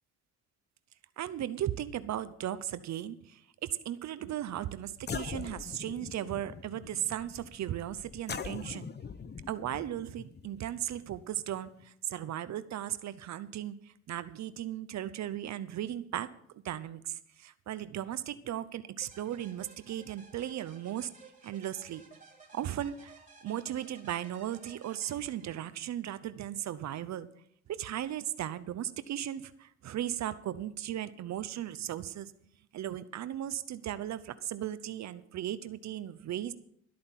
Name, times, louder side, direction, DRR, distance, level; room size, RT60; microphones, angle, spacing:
voice 1, 1.2-8.9 9.5-16.3 16.5-21.1 21.4-22.0 22.5-27.3 27.7-32.3 32.7-36.5, right 11 dB, 65° right, 14 dB, 0.7 m, -37 dB
sound 1, 4.6-4.7 5.0-11.8, left 6 dB, 35° left, 0.8 m, -43 dB
sound 2, 19.0-25.9, right 4 dB, 25° right, 3.5 m, -56 dB
13.0 x 8.6 x 5.8 m, 0.68 s
cardioid pair, 90°, 30 cm